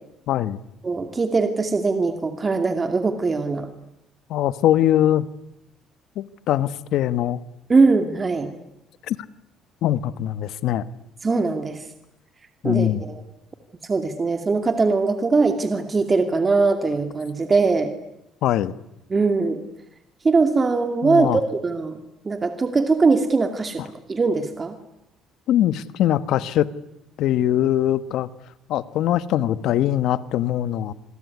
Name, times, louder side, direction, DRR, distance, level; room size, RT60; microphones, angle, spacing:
voice 1, 0.3-0.6 4.3-5.3 6.1-7.4 9.1-9.2 9.8-10.9 12.6-13.0 18.4-18.7 21.0-21.4 25.5-26.7 27.2-28.3 28.7-30.9, left 12 dB, 70° left, 15 dB, 1.4 m, -22 dB
voice 2, 0.8-3.7 7.7-8.5 11.2-11.9 12.6-13.2 13.8-17.9 19.1-19.6 20.2-22.0 22.2-23.8 24.1-24.8, right 4 dB, 25° right, 7 dB, 2.4 m, -21 dB
27.5 x 21.0 x 9.7 m, 0.87 s
cardioid pair, 105°, 0 cm